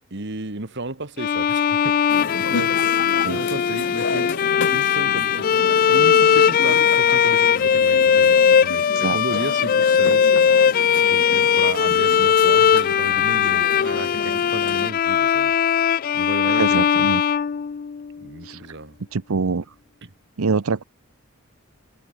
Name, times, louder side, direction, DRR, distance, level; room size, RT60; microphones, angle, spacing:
voice 1, 0.1-2.8 3.3-4.3 4.7-5.5 5.9-10.3 11.1-15.5 16.1-17.1 18.2-19.0 20.0-20.1, right 2 dB, 55° right, 2.0 m, -33 dB
Bowed string instrument, 1.2-18.2, left 8 dB, 40° left, 0.3 m, -19 dB
sound 1, 2.1-14.9, left 3 dB, 60° left, 1.8 m, -32 dB
voice 2, 16.5-17.2 18.4-18.6 19.1-19.7 20.4-20.8, right 4 dB, 85° right, 0.7 m, -24 dB
head